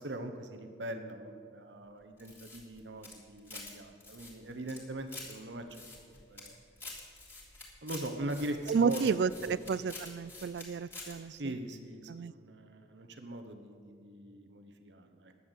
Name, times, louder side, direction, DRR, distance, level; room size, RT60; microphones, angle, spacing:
voice 1, 0.0-5.6 6.0-6.5 7.8-9.1 9.4-9.6 11.3-15.3, right 1 dB, 90° right, 6 dB, 1.0 m, -41 dB
sound 1, 2.2-3.7 4.0-5.3 5.7-6.5 6.8-10.6 10.9-11.1, left 2 dB, 10° left, 3.2 m, -47 dB
voice 2, 8.7-11.6 12.1-12.3, right 6 dB, 70° right, 19 dB, 0.3 m, -31 dB
11.0 x 8.7 x 8.1 m, 2.2 s
head